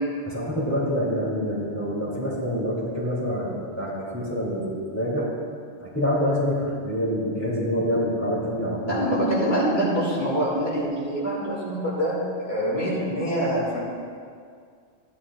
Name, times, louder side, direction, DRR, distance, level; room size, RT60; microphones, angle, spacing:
voice 1, 0.2-5.3 5.8-9.1, equal, 15° left, -7 dB, 3.2 m, -26 dB
voice 2, 8.8-12.2 12.4-13.8, equal, 60° left, -6 dB, 2.7 m, -25 dB
15.5 x 11.0 x 2.5 m, 2.2 s
omnidirectional pair, 1.2 m